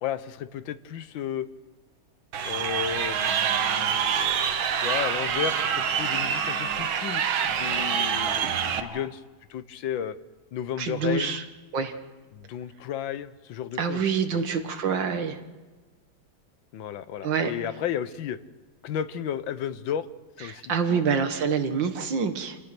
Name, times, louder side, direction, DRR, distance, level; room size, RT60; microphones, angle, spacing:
voice 1, 0.0-1.5 2.4-9.2 9.5-10.2 10.5-11.4 12.3-14.0 14.3-14.4 16.7-18.4 18.8-20.1 20.4-21.1, left 9 dB, 75° left, 13 dB, 1.6 m, -33 dB
Crowd, 2.3-8.8, right 8 dB, 85° right, 1.9 m, -26 dB
sound 1, 2.5-9.1, right 1 dB, 5° right, 1.6 m, -43 dB
voice 2, 10.8-11.4 11.7-11.9 13.8-15.4 17.2-17.5 20.5-22.6, right 6 dB, 70° right, 7 dB, 2.2 m, -26 dB
27.5 x 18.5 x 6.0 m, 1.3 s
omnidirectional pair, 2.1 m